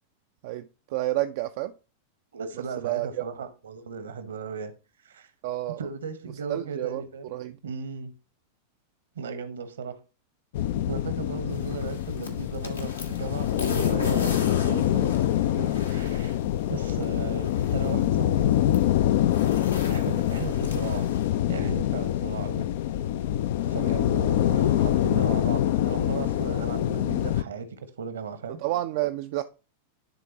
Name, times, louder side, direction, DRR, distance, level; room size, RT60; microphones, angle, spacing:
voice 1, 0.4-1.7 2.8-3.2 5.4-5.8 6.5-7.6 15.5-15.8 23.7-24.1 28.6-29.4, right 16 dB, 50° right, 0.4 m, -30 dB
voice 2, 2.3-4.7 5.0-5.3 5.8-7.3 7.6-8.1 9.1-10.0 10.9-16.4 16.7-18.4 19.9-21.1 21.5-22.7 23.6-27.7 28.0-28.6, right 5 dB, 65° right, 0.9 m, -36 dB
sound 1, 10.5-27.4, left 12 dB, 55° left, 0.3 m, -25 dB
sound 2, 11.5-21.3, left 3 dB, 75° left, 1.2 m, -39 dB
10.5 x 3.7 x 2.8 m
figure-of-eight pair, 90°, 0 cm